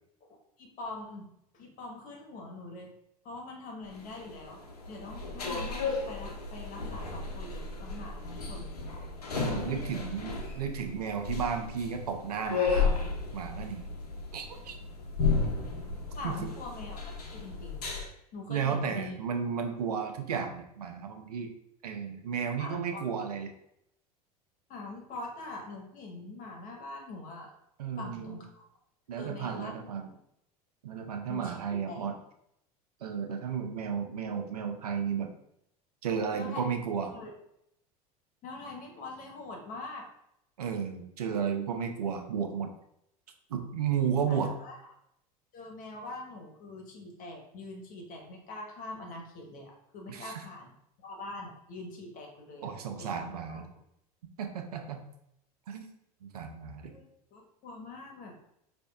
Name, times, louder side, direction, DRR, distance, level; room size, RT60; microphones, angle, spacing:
voice 1, 0.3-2.9 3.2-4.6 4.9-8.7 16.1-17.0 17.3-17.9 18.3-19.1 22.6-23.3 24.7-27.5 28.0-28.6 29.2-29.8 31.3-31.6 31.9-32.1 36.3-36.7 37.1-37.3 38.4-40.1 44.3-44.8 45.5-50.7 51.0-53.6 56.9-57.0 57.3-58.4, left 2 dB, 45° left, 1 dB, 1.2 m, -43 dB
sound 1, 3.9-18.1, left 4 dB, 85° left, 0.7 m, -34 dB
voice 2, 9.3-13.1 13.3-13.9 14.3-14.8 16.2-16.4 18.5-21.5 21.8-23.5 27.8-28.4 29.1-30.1 30.8-32.1 33.0-35.3 36.0-37.1 40.6-42.7 43.5-44.5 50.1-50.4 52.6-53.6 54.4-55.0 55.7-55.9 56.2-56.9, right 7 dB, 85° right, 5 dB, 0.5 m, -33 dB
5.1 x 2.6 x 2.3 m, 0.76 s
hypercardioid pair, 85°, 19 cm